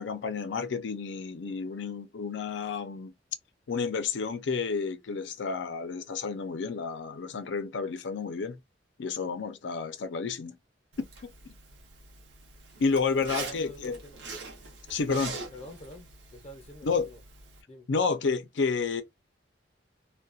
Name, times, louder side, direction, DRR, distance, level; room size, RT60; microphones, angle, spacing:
voice 1, 0.0-3.1 3.7-8.6 9.0-10.6 12.8-14.0 14.9-15.4 16.8-17.1 17.9-19.0, left 5 dB, 75° left, 0.5 m, -30 dB
Zipper (clothing), 10.9-17.6, right 4 dB, 75° right, 0.7 m, -43 dB
voice 2, 13.3-14.2 15.5-17.2 17.7-17.9, left 1 dB, 35° left, 0.6 m, -46 dB
2.3 x 2.1 x 2.5 m
head